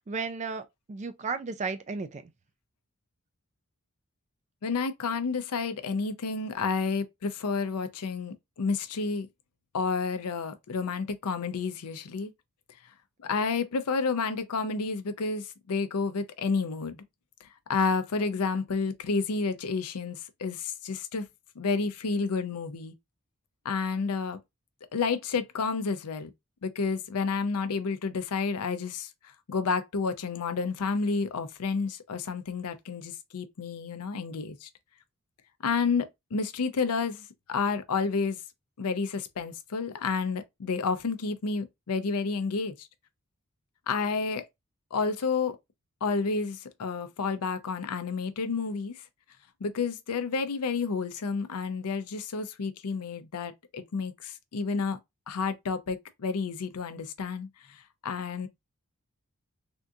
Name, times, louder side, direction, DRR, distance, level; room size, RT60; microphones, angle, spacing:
voice 1, 0.0-2.2, right 4 dB, 30° right, 0.4 m, -34 dB
voice 2, 4.6-9.3 9.7-12.3 13.2-17.0 17.4-21.3 21.6-22.9 23.6-24.4 24.9-26.3 26.6-29.1 29.5-34.7 35.6-38.4 38.8-42.9 43.9-44.4 44.9-45.6 46.0-49.0 49.6-55.0 55.3-58.5, left 4 dB, 85° left, 0.5 m, -30 dB
3.5 x 2.5 x 2.6 m
head